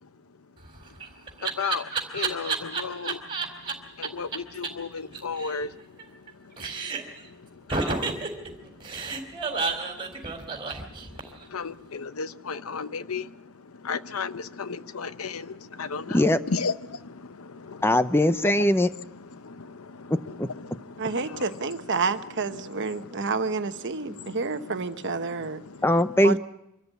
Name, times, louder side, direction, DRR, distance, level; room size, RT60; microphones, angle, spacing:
Laughter, 0.6-3.7 4.0-4.1 4.3-4.4 4.6-4.7 5.0-6.3 6.6-7.2 7.7-11.4, right 4 dB, 25° right, 3.6 m, -30 dB
voice 1, 1.4-3.3 3.6-18.0 19.2-21.4 22.9-23.3 24.2-24.7 25.2-25.8, left 5 dB, 90° left, 0.8 m, -36 dB
voice 2, 17.8-18.9 20.1-20.5 25.8-26.4, left 1 dB, 10° left, 0.7 m, -21 dB
voice 3, 21.0-25.6 26.2-26.4, right 4 dB, 60° right, 1.1 m, -29 dB
25.5 x 13.5 x 8.2 m
head